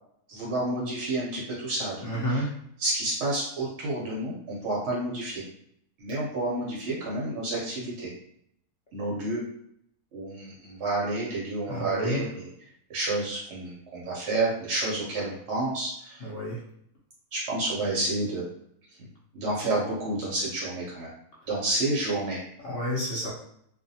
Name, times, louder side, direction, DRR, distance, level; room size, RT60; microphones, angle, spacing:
voice 1, 0.3-2.1 2.8-5.4 6.0-8.1 8.9-9.4 10.1-12.5 12.9-16.3 17.3-18.5 19.3-21.1 21.5-22.4, right 2 dB, 60° right, -5 dB, 0.7 m, -30 dB
voice 2, 2.0-2.5 11.7-12.3 16.2-16.6 22.6-23.3, equal, 65° left, -6 dB, 0.6 m, -30 dB
2.5 x 2.3 x 2.6 m, 0.71 s
omnidirectional pair, 1.7 m